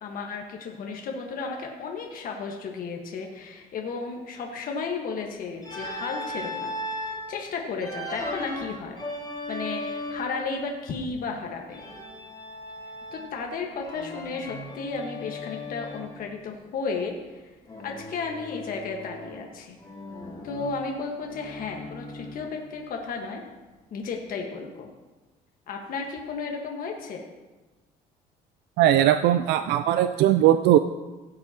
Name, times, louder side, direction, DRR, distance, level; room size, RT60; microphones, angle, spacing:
voice 1, 0.0-6.7 7.0-9.0 9.5-11.8 13.1-17.4 17.8-19.8 20.4-23.4 23.9-24.9 25.7-27.2, left 4 dB, 55° left, 1 dB, 1.4 m, -34 dB
Organ, 5.6-7.3 7.8-10.4 11.7-13.4 13.8-16.1 17.7-19.5 19.8-22.5, left 1 dB, 25° left, 2.6 m, -37 dB
voice 2, 28.8-30.8, right 12 dB, 85° right, 11 dB, 0.4 m, -19 dB
17.0 x 7.7 x 2.9 m, 1.2 s
cardioid pair, 110°, 17 cm